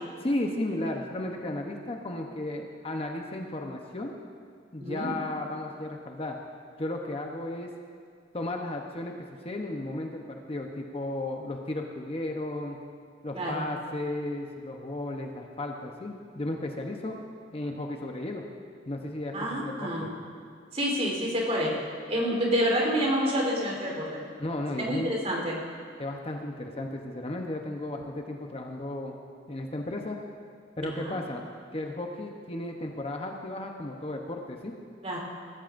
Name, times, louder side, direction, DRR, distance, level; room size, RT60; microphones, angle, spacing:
voice 1, 0.2-4.1 4.7-6.4 6.8-7.7 8.3-12.8 13.2-17.2 17.5-18.4 18.9-20.1 24.4-25.1 26.0-29.2 29.5-30.2 30.8-31.5 31.7-34.7, left 1 dB, 35° left, 2 dB, 0.9 m, -34 dB
voice 2, 4.8-5.1 13.3-13.6 19.3-20.1 20.7-21.8 22.1-24.2 24.8-25.6 30.8-31.2 35.0-35.2, equal, 40° right, -2 dB, 3.7 m, -28 dB
19.0 x 14.0 x 2.6 m, 2.2 s
head